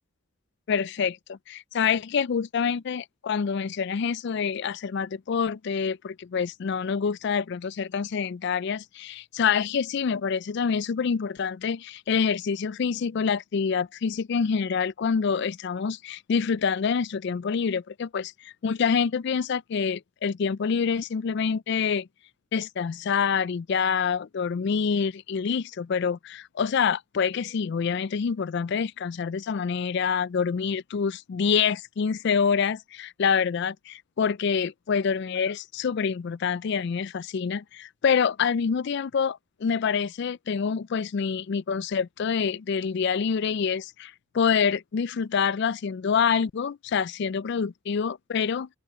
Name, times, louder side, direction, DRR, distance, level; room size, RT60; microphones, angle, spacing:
voice 1, 0.7-22.1 22.5-48.7, left 6 dB, 50° left, 0.3 m, -26 dB
open air
head